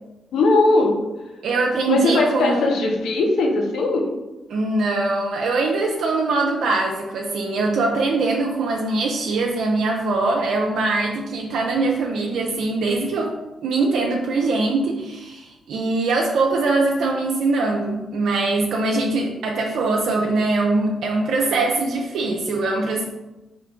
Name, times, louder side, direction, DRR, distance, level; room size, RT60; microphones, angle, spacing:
voice 1, 0.3-1.0 1.9-4.1, left 2 dB, 80° left, 1 dB, 0.7 m, -19 dB
voice 2, 1.4-2.8 4.5-23.0, right 3 dB, 75° right, 0 dB, 0.4 m, -22 dB
3.6 x 3.1 x 3.5 m, 1.0 s
supercardioid pair, 45°, 0 cm